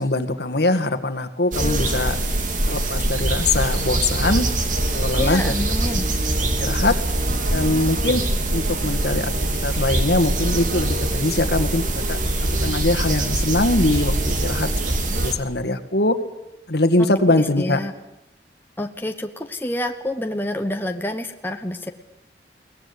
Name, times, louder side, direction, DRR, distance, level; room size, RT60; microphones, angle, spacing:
voice 1, 0.0-2.2 2.7-4.5 4.9-5.5 6.4-7.0 7.5-8.2 8.5-9.3 9.6-12.2 12.6-14.7 15.1-16.2 16.7-17.8, left 2 dB, 60° left, 7 dB, 1.9 m, -22 dB
sound 1, 1.5-15.3, right 1 dB, 45° right, 2.7 m, -23 dB
voice 2, 5.1-6.1 17.3-17.9 18.8-21.9, left 1 dB, 10° left, 5 dB, 1.2 m, -28 dB
22.0 x 19.0 x 9.7 m, 0.87 s
head